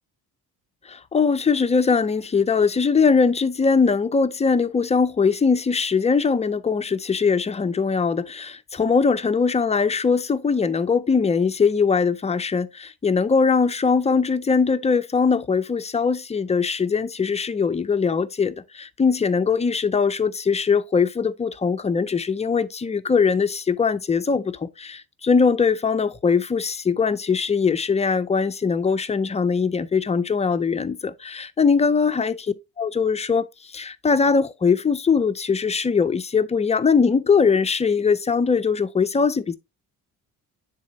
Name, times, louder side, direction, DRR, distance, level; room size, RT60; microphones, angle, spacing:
voice 1, 0.9-39.5, left 5 dB, 20° left, 0.3 m, -21 dB
9.4 x 4.0 x 2.7 m
cardioid pair, 125°, 38 cm